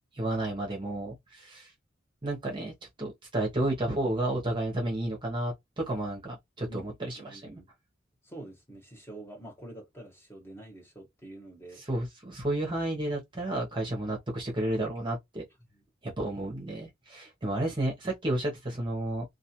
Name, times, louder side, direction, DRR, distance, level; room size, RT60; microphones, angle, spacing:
voice 1, 0.1-1.7 2.2-2.7 3.0-7.6 11.8-15.4 16.0-19.2, right 1 dB, 25° right, 0.8 m, -32 dB
voice 2, 7.1-7.7 8.2-11.8 15.7-15.8, right 1 dB, 10° left, 1.2 m, -46 dB
2.4 x 2.3 x 2.9 m
head